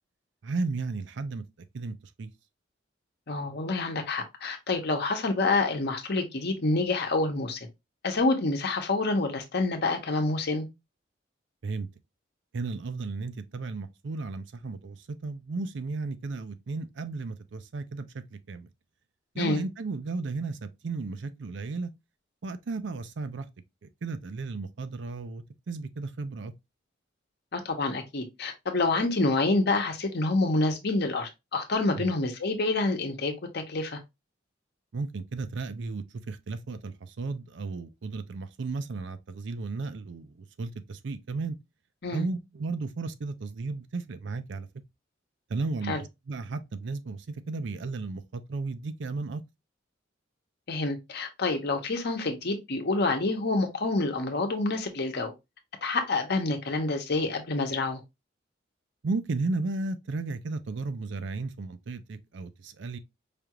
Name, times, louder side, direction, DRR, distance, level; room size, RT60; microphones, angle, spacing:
voice 1, 0.4-1.4 1.7-2.3 11.6-11.9 12.5-18.7 19.3-21.9 22.4-23.5 23.8-26.5 32.0-32.1 34.9-41.6 42.1-44.7 45.5-46.0 46.3-49.4 59.0-63.0, right 3 dB, 70° right, 0.5 m, -34 dB
voice 2, 3.3-7.7 8.0-10.7 19.4-19.6 27.5-34.0 42.0-42.3 45.9-46.0 50.7-55.3 55.8-58.0, left 3 dB, 60° left, 0.9 m, -27 dB
5.0 x 2.4 x 2.9 m
head